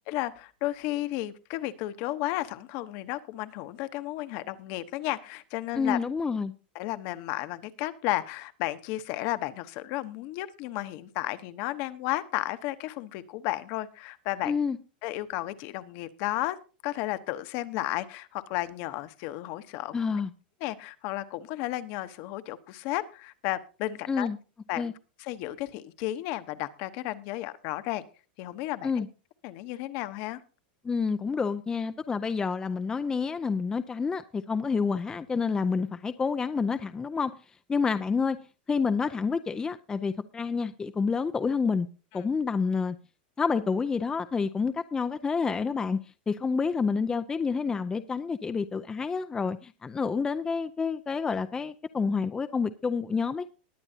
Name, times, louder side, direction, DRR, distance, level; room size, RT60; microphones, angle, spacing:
voice 1, 0.1-6.0 6.7-14.6 15.0-16.6 16.8-19.9 20.6-24.3 24.7-24.9 25.2-28.0 28.4-29.0 29.4-30.4 42.1-42.3, left 16 dB, 50° left, 1.0 m, -33 dB
voice 2, 5.7-6.5 14.4-14.8 19.9-20.3 24.1-24.4 24.8-24.9 28.8-29.1 30.8-37.3 37.7-38.4 38.7-41.9 42.1-43.0 43.4-46.0 46.3-53.5, left 5 dB, 15° left, 0.5 m, -28 dB
20.0 x 8.7 x 2.8 m
supercardioid pair, 140°, 5 cm